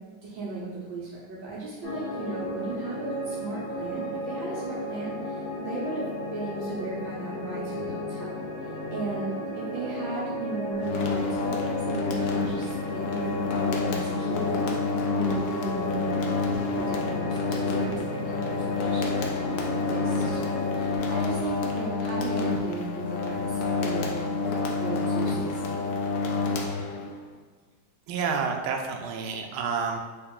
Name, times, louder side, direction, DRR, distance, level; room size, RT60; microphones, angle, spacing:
voice 1, 0.2-8.4 8.9-14.5 15.1-16.1 16.7-19.6 19.9-24.4 24.8-25.8, right 2 dB, 70° right, -6 dB, 1.6 m, -36 dB
sound 1, 1.8-21.0, left 1 dB, 50° left, 1.0 m, -35 dB
sound 2, 10.8-27.3, left 3 dB, 85° left, 0.8 m, -28 dB
voice 2, 28.1-30.0, right 5 dB, 90° right, 3 dB, 1.4 m, -29 dB
4.0 x 3.0 x 3.6 m, 1.4 s
omnidirectional pair, 2.2 m